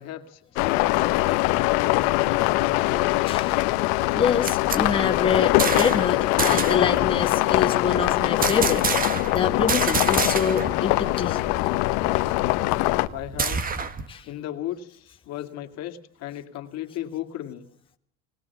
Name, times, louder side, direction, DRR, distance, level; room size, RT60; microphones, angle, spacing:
voice 1, 0.0-3.0 13.1-13.6 14.2-17.7, left 12 dB, 60° left, 5 dB, 2.3 m, -36 dB
sound 1, 0.6-13.1, left 19 dB, 85° left, 1.1 m, -22 dB
voice 2, 3.3-3.6 4.1-11.6 14.1-14.3, left 6 dB, 15° left, 2 dB, 1.7 m, -26 dB
sound 2, 4.1-6.1 6.4-6.9 8.4-9.4 9.7-10.8 11.0-11.1 11.5-14.1, right 5 dB, 30° right, 1.5 m, -28 dB
21.0 x 18.5 x 7.2 m, 0.63 s
cardioid pair, 130°, 30 cm